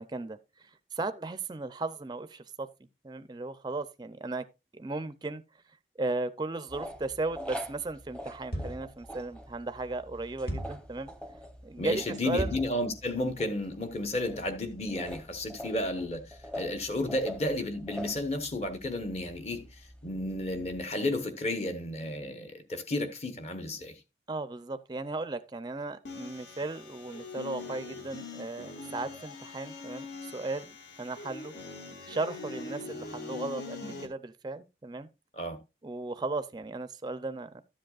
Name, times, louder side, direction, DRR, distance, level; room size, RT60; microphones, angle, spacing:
voice 1, 0.0-2.7 3.0-4.4 4.7-5.4 6.0-11.1 11.6-12.6 24.3-31.5 32.1-35.1 35.8-37.6, right 2 dB, 25° right, 0.4 m, -36 dB
sound 1, 6.7-20.9, left 1 dB, 5° left, 0.7 m, -45 dB
sound 2, 8.5-9.0 10.5-10.9 12.4-12.8, right 1 dB, 60° left, 1.6 m, -35 dB
voice 2, 11.8-19.7 20.0-24.0 35.3-35.6, left 1 dB, 35° left, 1.1 m, -32 dB
sound 3, 26.1-34.1, left 3 dB, 75° left, 1.7 m, -42 dB
12.5 x 7.7 x 2.4 m
head